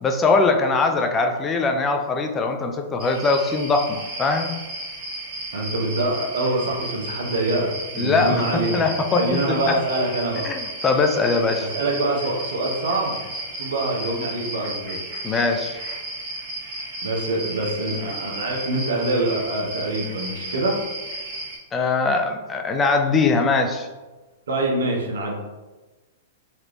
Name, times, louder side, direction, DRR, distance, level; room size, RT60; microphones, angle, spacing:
voice 1, 0.0-4.5 8.0-9.8 10.4-11.7 15.2-15.8 21.7-23.9, left 3 dB, 20° left, 5 dB, 0.4 m, -21 dB
sound 1, 3.0-21.6, right 1 dB, 40° right, 1.0 m, -33 dB
voice 2, 5.5-8.8 9.1-10.4 11.7-15.0 17.0-20.8 24.5-25.3, right 2 dB, 70° right, 0 dB, 0.8 m, -25 dB
3.3 x 2.4 x 3.0 m, 1.2 s
hypercardioid pair, 110°, 0 cm